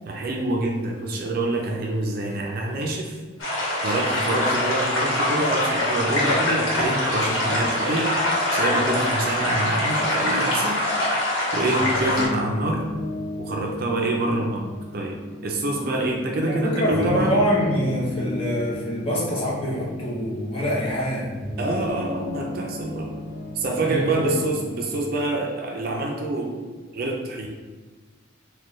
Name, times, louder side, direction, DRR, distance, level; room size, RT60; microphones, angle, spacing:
voice 1, 0.1-3.2 3.8-8.1 8.5-10.8 11.5-12.8 13.4-17.3 21.6-23.1 23.5-26.6 26.9-27.5, right 2 dB, 50° right, 0 dB, 0.4 m, -26 dB
sound 1, 3.4-12.3, left 1 dB, 80° left, 1.1 m, -23 dB
sound 2, 11.7-25.0, left 1 dB, 35° right, 0.9 m, -34 dB
voice 2, 16.5-21.5 23.8-24.4, equal, 30° left, -6 dB, 0.9 m, -25 dB
4.2 x 2.2 x 3.1 m, 1.3 s
head